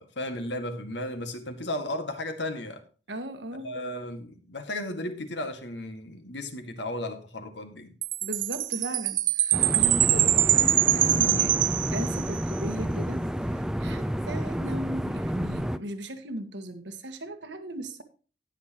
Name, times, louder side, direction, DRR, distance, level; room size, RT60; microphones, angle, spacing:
voice 1, 0.0-2.8 3.6-8.0, left 1 dB, 75° left, 1.9 m, -34 dB
voice 2, 3.1-3.7 8.2-18.0, right 1 dB, 85° right, 1.6 m, -37 dB
Chime, 8.0-12.5, right 13 dB, 50° right, 0.5 m, -24 dB
sound 1, 9.5-15.8, equal, 5° right, 0.5 m, -30 dB
18.0 x 6.5 x 3.0 m
head